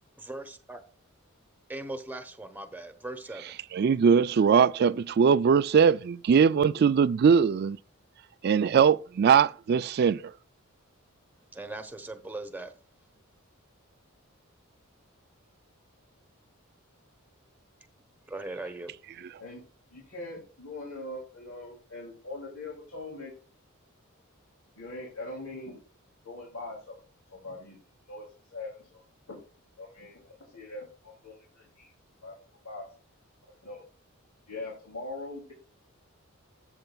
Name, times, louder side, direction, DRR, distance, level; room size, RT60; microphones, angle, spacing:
voice 1, 0.2-0.8 1.7-3.4 11.5-12.7 18.3-18.9, right 2 dB, 10° right, 1.0 m, -39 dB
voice 2, 3.7-7.8 8.4-10.3, right 6 dB, 45° right, 0.3 m, -21 dB
voice 3, 19.9-23.3 24.8-25.8 26.2-27.0 27.3-27.8 28.1-29.4 29.8-31.9 32.2-32.4 32.6-32.9 33.4-33.8 34.5-35.5, left 2 dB, 80° left, 2.8 m, -42 dB
13.0 x 7.9 x 2.3 m
head